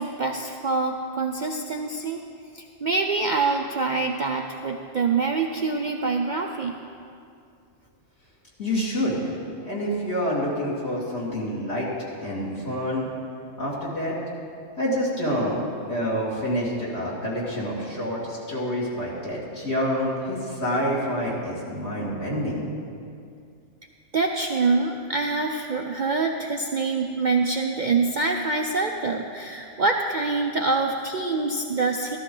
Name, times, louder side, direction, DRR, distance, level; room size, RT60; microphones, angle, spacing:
voice 1, 0.0-2.2 2.5-6.8 24.1-32.2, right 3 dB, 50° right, 2 dB, 0.6 m, -25 dB
voice 2, 8.6-11.9 12.2-13.1 13.6-14.2 14.8-15.6 15.9-22.6, equal, 55° left, -6 dB, 2.9 m, -27 dB
13.5 x 13.5 x 3.9 m, 2.4 s
omnidirectional pair, 1.3 m